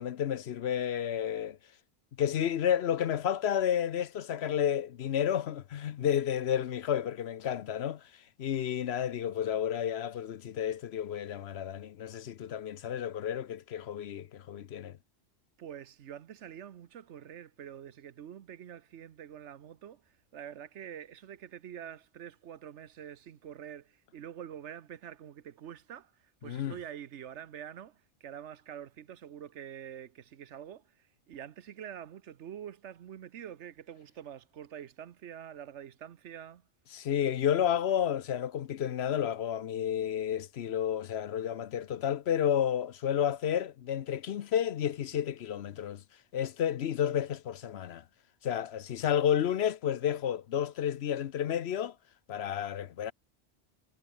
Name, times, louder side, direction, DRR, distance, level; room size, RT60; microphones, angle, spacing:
voice 1, 0.0-1.6 2.2-8.0 8.4-15.0 26.4-26.7 36.9-46.0 46.3-48.0 48.4-51.9 52.3-53.1, left 9 dB, 65° left, 0.9 m, -31 dB
voice 2, 15.6-36.7, right 9 dB, 75° right, 1.1 m, -46 dB
omnidirectional pair, 1.2 m